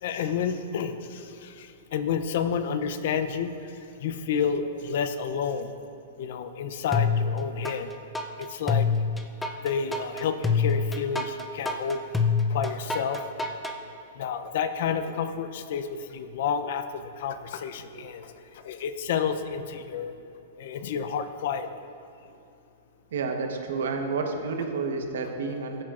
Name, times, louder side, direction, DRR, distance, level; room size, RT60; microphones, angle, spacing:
voice 1, 0.0-5.7 6.2-7.9 8.4-8.9 9.6-12.0 12.5-13.3 14.2-20.1 20.6-21.8, left 7 dB, 55° left, 10 dB, 0.6 m, -30 dB
sound 1, 6.9-7.8 8.1-13.8, left 5 dB, 5° left, 0.5 m, -26 dB
voice 2, 23.1-25.8, right 4 dB, 80° right, 4 dB, 1.2 m, -30 dB
15.5 x 8.9 x 2.5 m, 2.8 s
hypercardioid pair, 155°, 0 cm